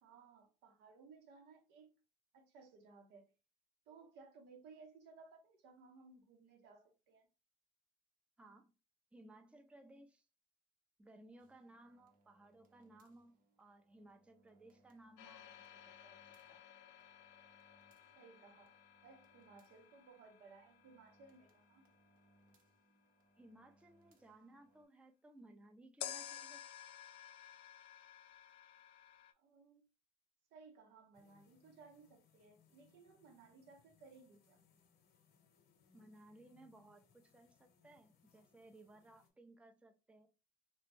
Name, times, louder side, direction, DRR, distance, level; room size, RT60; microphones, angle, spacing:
voice 1, 0.0-1.9 2.3-3.3 3.9-7.3 18.1-18.8 19.0-21.9 29.4-29.8 30.5-34.6, right 4 dB, 90° right, 0.8 m, -61 dB
voice 2, 8.4-8.7 9.1-10.3 11.0-16.2 16.5-16.7 23.4-26.7 35.9-40.3, right 1 dB, 5° right, 0.4 m, -61 dB
sound 1, 11.4-24.8, right 1 dB, 55° right, 0.7 m, -74 dB
sound 2, 15.2-23.1 26.0-29.3, left 10 dB, 85° left, 0.4 m, -54 dB
sound 3, 31.1-39.3, left 6 dB, 70° left, 0.8 m, -72 dB
3.1 x 2.1 x 3.1 m
cardioid pair, 110°, 17 cm